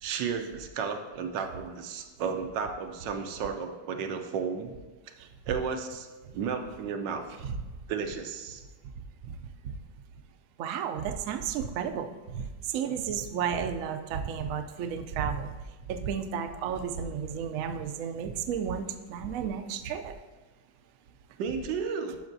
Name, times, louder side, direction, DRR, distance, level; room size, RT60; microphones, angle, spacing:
voice 1, 0.0-4.7 5.5-6.1 6.3-7.2 7.9-8.6 21.4-22.2, right 6 dB, 90° right, 5 dB, 1.4 m, -33 dB
voice 2, 10.6-15.5 15.9-20.1, right 7 dB, 70° right, 7 dB, 0.7 m, -33 dB
11.5 x 5.8 x 2.6 m, 1.3 s
omnidirectional pair, 1.9 m